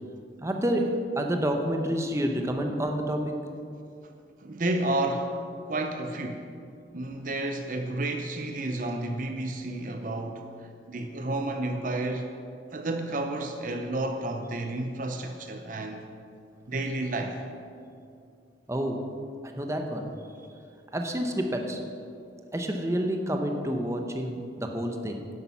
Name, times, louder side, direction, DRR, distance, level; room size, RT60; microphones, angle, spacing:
voice 1, 0.4-3.3 18.7-19.0 19.4-20.1 20.9-21.8 22.5-25.3, equal, 15° right, 3 dB, 0.8 m, -29 dB
voice 2, 4.4-5.3 5.7-6.5 6.9-10.5 10.9-12.3 12.7-16.1 16.7-17.4, right 2 dB, 45° right, 5 dB, 0.6 m, -31 dB
10.5 x 8.5 x 5.6 m, 2.5 s
head